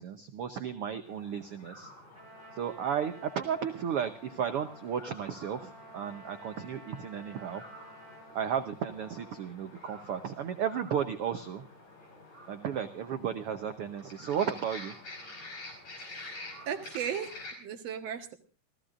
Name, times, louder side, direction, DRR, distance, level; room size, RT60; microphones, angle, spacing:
voice 1, 0.0-1.9 2.5-7.6 8.3-11.6 12.5-14.9, right 8 dB, 80° right, 7 dB, 1.3 m, -34 dB
sound 1, 1.0-17.5, left 2 dB, 55° left, 6.4 m, -49 dB
Trumpet, 2.1-9.5, right 1 dB, 20° right, 5.0 m, -53 dB
voice 2, 16.0-16.4 16.7-18.3, right 8 dB, 60° right, 5 dB, 2.3 m, -37 dB
28.0 x 15.5 x 2.5 m, 0.34 s
omnidirectional pair, 3.8 m